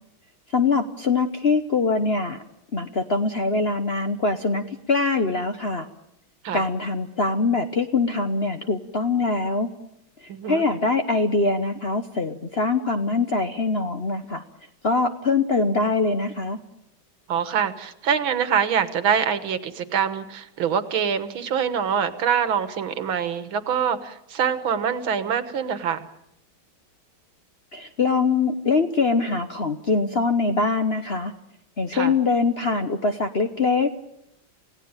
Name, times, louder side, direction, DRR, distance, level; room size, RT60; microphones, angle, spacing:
voice 1, 0.5-2.4 2.7-5.9 6.5-9.7 10.2-14.4 14.8-16.6 27.7-31.3 31.8-33.9, left 3 dB, 45° left, 7 dB, 0.9 m, -23 dB
voice 2, 10.3-10.7 17.3-26.1 31.9-32.1, right 7 dB, 75° right, 11 dB, 2.1 m, -24 dB
28.5 x 17.0 x 8.9 m, 0.83 s
omnidirectional pair, 2.2 m